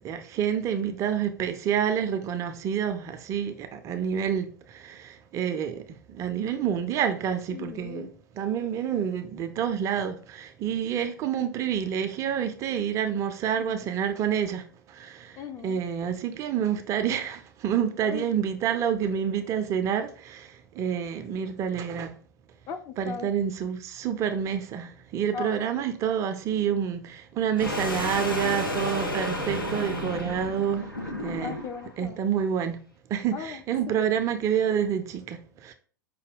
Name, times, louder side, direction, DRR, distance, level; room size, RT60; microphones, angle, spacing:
voice 1, 0.0-8.1 8.3-22.1 23.0-31.6 32.0-32.8 33.1-35.7, right 8 dB, 25° right, 0.4 m, -28 dB
voice 2, 7.5-8.1 13.6-13.9 15.4-15.8 18.0-18.3 22.7-23.3 25.3-25.6 31.4-32.2 33.3-33.6 33.9-34.1, left 6 dB, 30° left, 0.5 m, -38 dB
sound 1, 27.6-31.9, left 1 dB, 90° left, 0.8 m, -31 dB
5.1 x 2.2 x 3.4 m
figure-of-eight pair, 95°, 11 cm